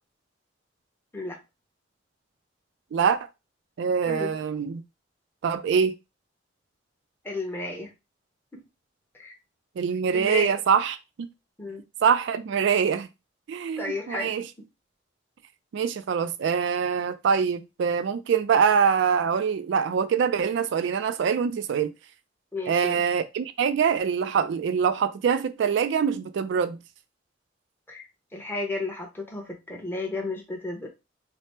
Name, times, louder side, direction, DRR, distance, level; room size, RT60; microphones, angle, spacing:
voice 1, 2.9-3.3 3.8-4.8 5.4-6.0 9.8-11.3 12.0-13.1 13.5-14.5 15.7-21.9 22.7-26.8, right 6 dB, 70° right, 0.3 m, -24 dB
voice 2, 7.2-7.9 8.5-8.6 9.1-9.3 10.1-10.5 11.6-11.8 13.8-14.3 22.5-23.0 27.9-30.9, left 2 dB, 10° left, 0.8 m, -33 dB
3.3 x 2.0 x 4.2 m
head